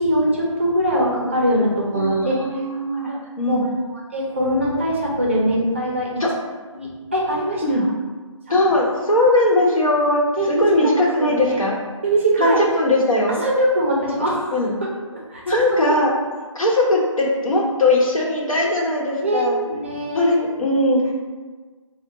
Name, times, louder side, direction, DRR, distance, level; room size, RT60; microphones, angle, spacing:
voice 1, 0.0-2.4 3.0-3.2 3.5-3.6 3.9-6.1 6.7-7.6 10.4-11.6 12.0-12.6 13.4-14.5 15.3-16.0 19.2-20.3, right 1 dB, 25° right, -4 dB, 0.4 m, -22 dB
voice 2, 1.9-3.1 3.4-3.6 6.2-6.3 7.6-7.8 8.5-11.8 12.4-13.4 14.5-14.7 15.5-16.1 16.5-19.6 20.1-21.1, left 1 dB, 85° left, -2 dB, 1.0 m, -19 dB
3.8 x 2.1 x 3.6 m, 1.4 s
figure-of-eight pair, 170°, 17 cm